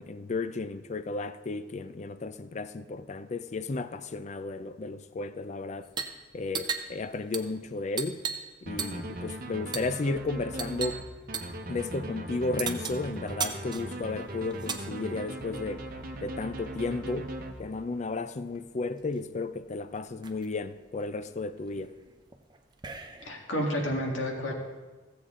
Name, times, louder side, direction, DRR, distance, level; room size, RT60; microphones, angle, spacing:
voice 1, 0.0-5.9 6.3-8.2 8.6-11.0 11.7-15.8 16.2-17.3 17.6-21.9, left 3 dB, 35° left, 0.4 m, -33 dB
sound 1, 5.8-6.2 6.5-8.5 8.8-9.2 9.7-10.0 10.6-11.0 11.3-11.6 12.6-14.9 15.9-17.0 18.2-18.3 18.5-19.2 19.6-19.7 19.9-20.5 21.0-23.4, right 6 dB, 25° right, 0.6 m, -37 dB
sound 2, 8.7-18.0, right 1 dB, 50° right, 0.9 m, -39 dB
voice 2, 23.2-24.5, equal, 85° left, 1.9 m, -30 dB
15.0 x 7.8 x 3.7 m
head